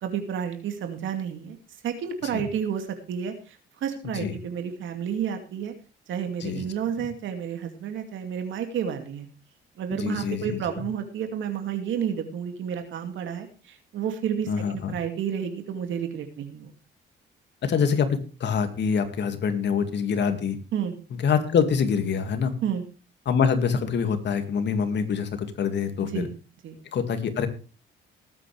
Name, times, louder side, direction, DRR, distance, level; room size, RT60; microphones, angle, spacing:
voice 1, 0.0-1.6 1.8-5.7 6.1-9.3 9.8-16.7 20.7-20.9 22.6-22.9 26.0-26.3 26.6-26.8, right 8 dB, 75° right, 6 dB, 2.5 m, -31 dB
voice 2, 9.9-10.8 14.5-14.9 17.6-20.6 21.2-22.5 23.3-26.3 26.9-27.5, left 6 dB, 60° left, 8 dB, 2.3 m, -25 dB
19.5 x 8.7 x 3.4 m, 0.34 s
cardioid pair, 90°, 20 cm